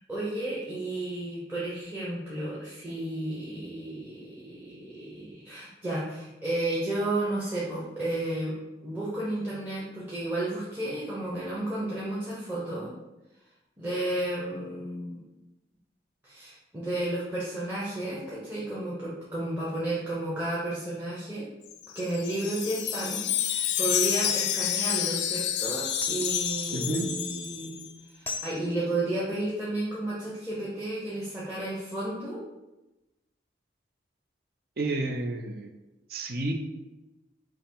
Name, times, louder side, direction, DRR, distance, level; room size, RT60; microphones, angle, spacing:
voice 1, 0.1-12.9 13.8-15.3 16.2-21.5 21.9-27.8 28.1-32.4, right 1 dB, 10° right, -8 dB, 0.8 m, -32 dB
Wind chime, 21.7-27.9, left 10 dB, 75° left, 0.4 m, -29 dB
sound 1, 26.0-27.7 28.3-28.6, left 2 dB, 10° left, 0.4 m, -38 dB
voice 2, 26.7-27.1 34.8-35.7 36.1-36.5, right 2 dB, 55° right, 5 dB, 0.5 m, -30 dB
5.7 x 2.0 x 4.5 m, 1.0 s
head